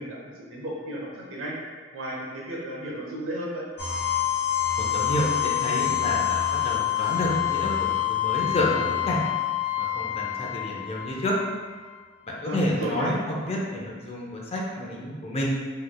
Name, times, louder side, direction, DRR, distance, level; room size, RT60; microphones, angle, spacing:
voice 1, 0.0-1.5 1.9-3.6 12.4-13.1, right 1 dB, 70° right, -3 dB, 0.9 m, -34 dB
sound 1, 3.8-11.6, left 11 dB, 50° left, 1.0 m, -26 dB
voice 2, 4.8-9.2 9.8-11.3 12.3-15.5, left 1 dB, 30° left, -3 dB, 0.6 m, -29 dB
3.9 x 3.2 x 2.2 m, 1.5 s
head